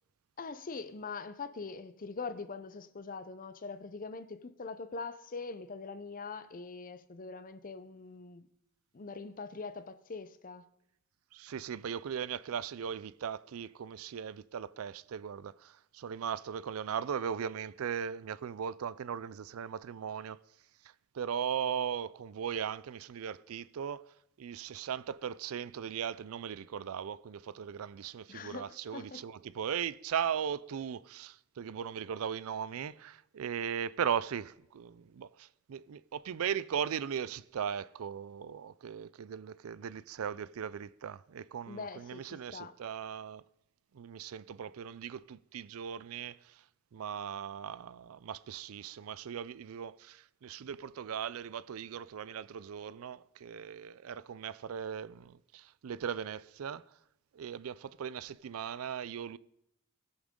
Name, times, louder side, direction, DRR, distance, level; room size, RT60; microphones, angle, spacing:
voice 1, 0.4-8.5 8.9-10.7 28.3-29.2 41.7-42.7, left 4 dB, 40° left, 0.6 m, -43 dB
voice 2, 11.3-20.4 20.8-43.4 43.9-46.6 46.9-56.8 57.3-59.4, right 8 dB, 80° right, 0.4 m, -38 dB
21.0 x 7.1 x 3.7 m
head